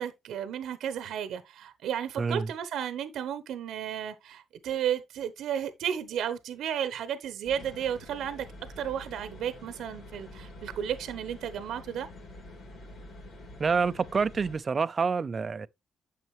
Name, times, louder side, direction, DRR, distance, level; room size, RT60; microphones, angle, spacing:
voice 1, 0.0-8.5 8.8-12.1, right 9 dB, 75° right, 1.0 m, -33 dB
voice 2, 2.2-2.5 13.6-15.7, right 5 dB, 45° right, 0.6 m, -27 dB
sound 1, 7.4-14.6, left 1 dB, 65° left, 3.5 m, -47 dB
9.2 x 6.7 x 3.2 m
supercardioid pair, 55°, 0 cm